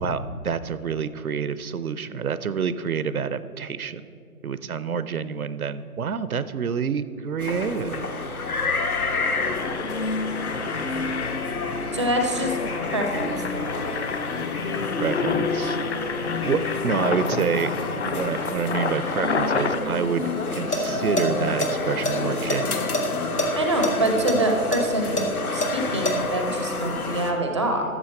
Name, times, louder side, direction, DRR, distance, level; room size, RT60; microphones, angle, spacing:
voice 1, 0.0-4.0 4.4-8.1 15.0-15.8 16.5-22.9, right 6 dB, 70° right, 14 dB, 0.6 m, -28 dB
sound 1, 7.4-27.3, left 3 dB, 70° left, 1.3 m, -29 dB
Engine, 8.1-8.2 8.4-8.6 9.1-19.8, left 5 dB, 45° left, 0.7 m, -32 dB
voice 2, 11.9-12.6 12.8-13.3 13.5-13.8 23.6-25.3 25.5-27.8, right 1 dB, 20° right, 3 dB, 0.5 m, -25 dB
sound 2, 20.5-20.9 21.2-21.3 21.6-23.0 23.4-23.5 23.8-26.1, left 1 dB, 90° left, 1.8 m, -25 dB
13.0 x 7.2 x 4.4 m, 2.5 s
figure-of-eight pair, 135°, 45 cm